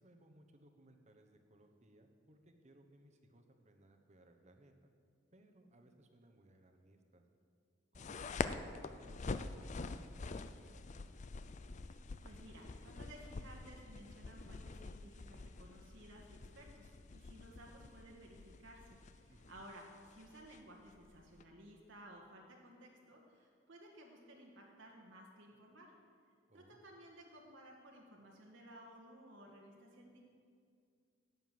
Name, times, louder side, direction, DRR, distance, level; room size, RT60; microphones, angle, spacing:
voice 1, 0.0-4.9 5.3-7.2 7.9-10.9 19.3-19.7 26.5-26.8, right 1 dB, 35° right, 5 dB, 1.1 m, -65 dB
sound 1, 7.9-21.4, left 4 dB, 35° left, 0.5 m, -46 dB
voice 2, 11.9-25.9 26.5-30.2, right 1 dB, 70° right, -1 dB, 1.8 m, -57 dB
11.0 x 9.2 x 7.7 m, 2.2 s
head